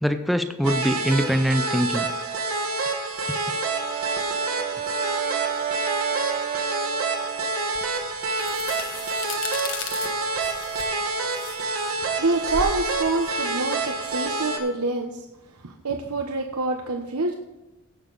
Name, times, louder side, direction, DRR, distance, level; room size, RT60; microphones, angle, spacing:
voice 1, 0.0-2.1, equal, ahead, 7 dB, 0.7 m, -23 dB
sound 1, 0.6-14.6, right 3 dB, 65° right, 1.5 m, -28 dB
Brass instrument, 3.5-7.7, right 10 dB, 35° right, 0.3 m, -31 dB
sound 2, 7.7-14.5, left 4 dB, 60° left, 1.5 m, -37 dB
voice 2, 12.0-15.2 15.6-17.3, right 3 dB, 90° right, 3 dB, 1.0 m, -26 dB
16.5 x 6.6 x 4.0 m, 1.0 s
head